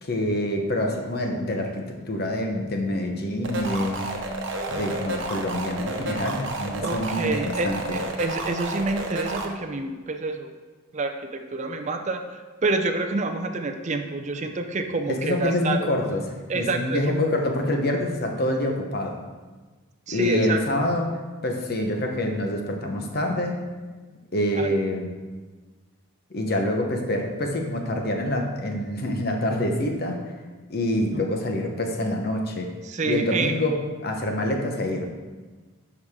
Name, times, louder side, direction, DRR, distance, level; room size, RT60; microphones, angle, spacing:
voice 1, 0.0-4.1 4.7-8.0 15.1-16.2 16.5-19.2 20.1-21.1 21.4-23.6 24.3-25.1 26.3-30.2 30.7-32.7 33.0-33.8 34.0-35.1, left 1 dB, 45° left, 2 dB, 1.0 m, -26 dB
sound 1, 3.4-9.4, right 2 dB, 60° right, 0.9 m, -31 dB
voice 2, 6.8-10.5 10.9-15.9 16.5-17.2 20.1-20.6 24.6-24.7 31.1-31.2 32.8-33.5, right 3 dB, 35° right, 6 dB, 0.4 m, -28 dB
11.5 x 4.8 x 3.6 m, 1.3 s
head